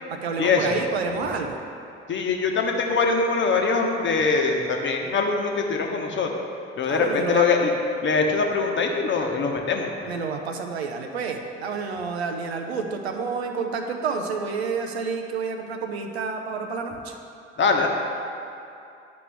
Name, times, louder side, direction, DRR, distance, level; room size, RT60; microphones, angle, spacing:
voice 1, 0.1-1.6 6.8-7.5 10.1-17.1, right 5 dB, 80° right, 4 dB, 0.6 m, -29 dB
voice 2, 2.1-6.3 6.8-7.7 8.0-10.1 17.6-17.9, left 4 dB, 35° left, 2 dB, 1.0 m, -23 dB
10.5 x 5.1 x 3.4 m, 2.6 s
figure-of-eight pair, 50°, 32 cm